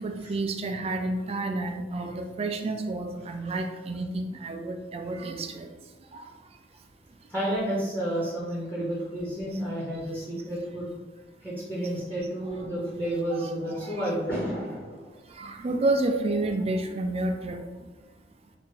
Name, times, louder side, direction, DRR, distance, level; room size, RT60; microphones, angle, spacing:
voice 1, 0.0-5.7 6.1-6.3 8.8-8.9 13.4-13.5 13.8-14.1 15.3-17.6, right 2 dB, 35° right, 5 dB, 0.3 m, -30 dB
voice 2, 7.3-10.9 11.4-15.1, right 1 dB, 10° left, -8 dB, 0.9 m, -31 dB
3.4 x 2.5 x 3.1 m, 1.2 s
head